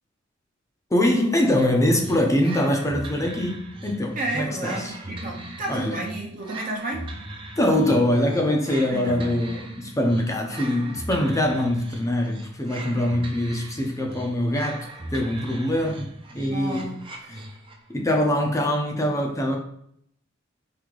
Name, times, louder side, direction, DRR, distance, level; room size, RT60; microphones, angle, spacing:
voice 1, 0.9-4.9 5.7-6.0 7.6-16.1 16.3-16.9 17.3-17.4 17.9-19.6, left 1 dB, 15° left, 0.6 m, -23 dB
sound 1, 2.0-17.9, right 1 dB, 25° right, 0.7 m, -39 dB
voice 2, 4.1-7.1 8.9-9.4 15.8-15.9 16.5-17.0, right 2 dB, 45° right, 1.0 m, -31 dB
4.6 x 2.8 x 3.8 m
head